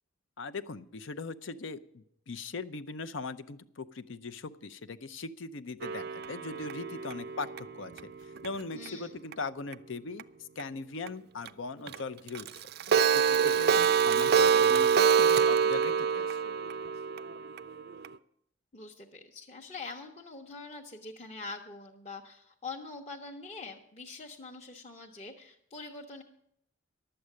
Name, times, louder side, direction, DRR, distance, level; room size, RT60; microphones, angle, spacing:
voice 1, 0.4-7.9 8.2-10.2 10.6-12.6 13.1-16.4, left 3 dB, 70° left, 12 dB, 0.7 m, -40 dB
Clock, 5.8-8.9 9.3-9.4 9.7-9.8 10.2-10.3 10.6-10.7 11.1-11.2 11.5-11.6 11.9-12.0 12.3-18.1, right 7 dB, 55° right, 0.4 m, -26 dB
voice 2, 8.7-9.1 18.7-26.2, left 3 dB, 30° left, -1 dB, 0.9 m, -44 dB
11.5 x 7.8 x 9.7 m, 0.74 s
head